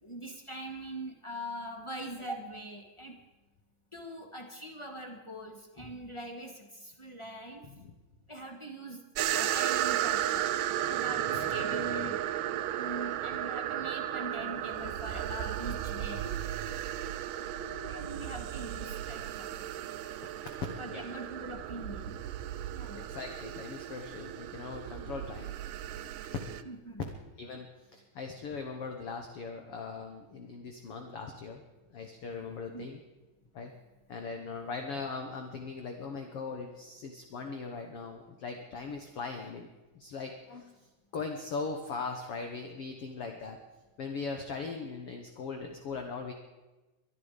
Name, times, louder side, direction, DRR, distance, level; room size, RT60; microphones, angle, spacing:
voice 1, 0.0-3.2 3.9-7.6 8.3-9.0 9.3-10.5 10.9-12.2 12.7-16.3 17.6-19.6 20.8-22.2 22.7-23.1 26.6-27.0 32.7-32.8, right 1 dB, 20° left, 2 dB, 0.7 m, -42 dB
voice 2, 7.6-7.9 11.2-12.2 13.8-13.9 15.1-15.2 20.2-20.3 20.9-21.0 22.9-25.5 27.0-27.1 27.4-31.6 31.9-33.0 33.5-33.7 34.1-39.7 39.9-40.7 41.1-43.6 44.0-46.3, left 4 dB, 55° left, 4 dB, 1.8 m, -40 dB
sound 1, 9.2-26.6, right 12 dB, 85° right, 2.3 m, -34 dB
23.0 x 11.5 x 5.1 m, 1.1 s
omnidirectional pair, 3.7 m